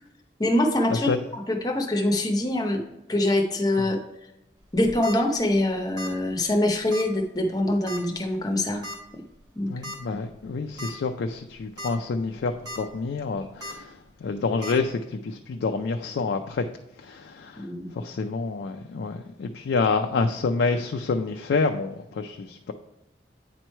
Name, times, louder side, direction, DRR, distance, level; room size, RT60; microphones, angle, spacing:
voice 1, 0.4-2.8 3.1-4.0 4.7-8.8 9.6-9.7 10.1-10.2 17.6-17.9, left 1 dB, 20° left, 3 dB, 0.7 m, -24 dB
sound 1, 4.7-5.2 6.0-6.2 6.5-6.6 6.9-7.1 7.9-8.2 8.8-9.0 9.8-10.0 10.4-10.5 10.8-10.9 11.6-11.9 12.3-12.8 13.6-13.7 14.6-14.7, left 1 dB, 20° right, 1.0 m, -36 dB
voice 2, 9.7-16.7 17.0-17.6 18.0-22.7, left 4 dB, 80° left, 5 dB, 0.4 m, -28 dB
9.1 x 3.1 x 4.4 m, 0.91 s
head